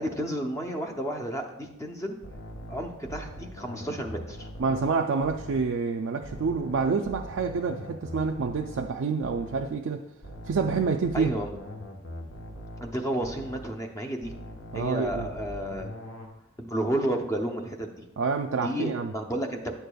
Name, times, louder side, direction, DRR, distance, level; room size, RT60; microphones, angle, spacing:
voice 1, 0.0-2.2 2.7-4.5 11.1-11.6 12.8-14.3 14.7-16.0 16.6-18.1 18.6-19.7, right 1 dB, 15° left, 4 dB, 0.6 m, -31 dB
sound 1, 2.2-5.7 6.2-9.8 10.2-13.7 14.2-16.3, equal, 70° left, 1.0 m, -42 dB
voice 2, 4.6-10.1 10.5-11.3 14.7-15.3 18.2-19.1, right 4 dB, 65° right, 2 dB, 0.4 m, -27 dB
9.5 x 6.6 x 2.3 m, 0.88 s
head